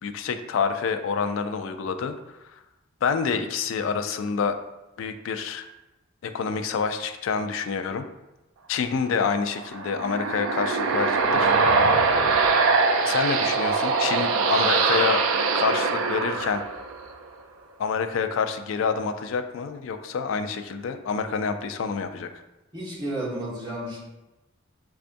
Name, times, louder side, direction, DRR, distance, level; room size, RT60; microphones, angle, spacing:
voice 1, 0.0-2.2 3.0-4.6 5.0-5.7 6.2-8.1 8.7-11.5 13.1-15.2 15.5-16.6 17.8-22.3, left 5 dB, 70° left, 8 dB, 0.3 m, -27 dB
sound 1, 9.6-17.1, right 4 dB, 80° right, 0.4 m, -22 dB
voice 2, 22.7-24.0, right 1 dB, 20° right, -7 dB, 1.0 m, -32 dB
5.1 x 2.3 x 2.5 m, 1.0 s
head